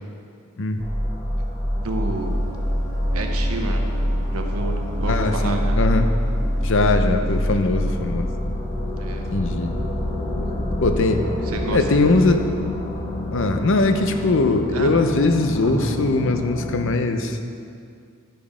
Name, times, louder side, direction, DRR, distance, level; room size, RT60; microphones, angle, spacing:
sound 1, 0.8-16.8, equal, 25° left, 1.2 m, -26 dB
voice 1, 1.8-2.4 3.1-3.8 4.3-5.9 9.0-9.2 10.4-10.5 11.4-11.8 14.7-14.9 15.6-15.9, right 2 dB, 80° right, 3 dB, 1.0 m, -30 dB
sound 2, 2.1-8.0, right 2 dB, 60° right, 0.6 m, -42 dB
voice 2, 5.1-6.1 6.6-8.3 9.3-9.7 10.8-11.3 11.7-12.5 13.3-17.4, left 2 dB, 60° left, 7 dB, 0.6 m, -20 dB
11.5 x 5.3 x 5.0 m, 2.3 s
head